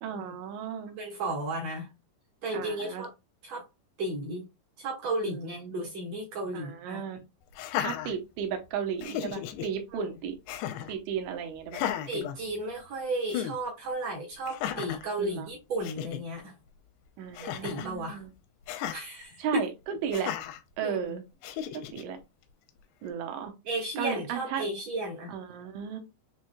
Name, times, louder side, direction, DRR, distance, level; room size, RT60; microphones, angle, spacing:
voice 1, 0.0-1.0 2.5-3.1 5.3-5.8 6.5-7.2 7.8-10.4 10.9-11.8 15.2-15.5 17.2-18.3 19.4-20.3 20.8-21.2 21.7-22.2 23.0-23.5 24.0-24.6 25.3-26.0, right 7 dB, 85° right, 3.2 m, -35 dB
voice 2, 1.0-1.9 2.4-3.1 3.4-3.6 4.0-4.5 4.8-7.0 9.9-10.1 12.1-16.5 17.4-18.2 18.9-19.6 20.8-21.2 23.6-25.3, right 2 dB, 65° right, 1.7 m, -34 dB
Laughter, 7.5-8.6 9.0-9.7 10.5-11.0 11.7-12.9 13.3-13.6 14.5-15.1 15.6-15.7 15.8-16.2 17.3-17.9 18.7-19.0 20.1-20.6 21.4-22.0, left 10 dB, 85° left, 2.3 m, -34 dB
7.5 x 3.1 x 2.2 m
omnidirectional pair, 5.2 m